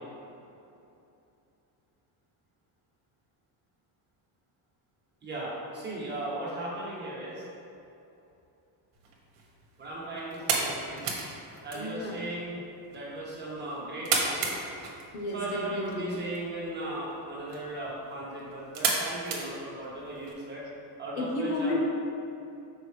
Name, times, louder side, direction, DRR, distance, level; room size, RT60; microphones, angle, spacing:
voice 1, 5.2-7.4 9.8-11.0 11.6-12.6 12.9-14.6 15.3-20.6 21.0-21.8, right 1 dB, 20° right, -7 dB, 1.4 m, -37 dB
sound 1, 8.9-20.3, right 4 dB, 60° right, 1.2 m, -35 dB
voice 2, 11.7-12.3 14.5-16.2 21.1-21.8, left 1 dB, 80° left, -1 dB, 1.2 m, -33 dB
6.2 x 5.0 x 3.4 m, 2.7 s
cardioid pair, 165°, 49 cm